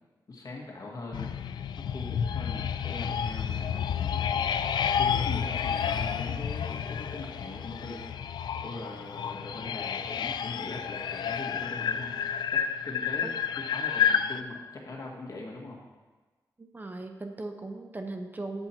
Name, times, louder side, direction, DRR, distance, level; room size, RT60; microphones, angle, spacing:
voice 1, 0.3-8.0 8.6-12.1 12.5-15.8, left 2 dB, 55° left, -2 dB, 1.9 m, -41 dB
sound 1, 1.1-14.4, left 8 dB, 80° left, 0.3 m, -30 dB
voice 2, 16.6-18.7, right 2 dB, 25° right, 5 dB, 0.6 m, -38 dB
8.5 x 8.0 x 4.4 m, 1.3 s
wide cardioid pair, 120°, 7 cm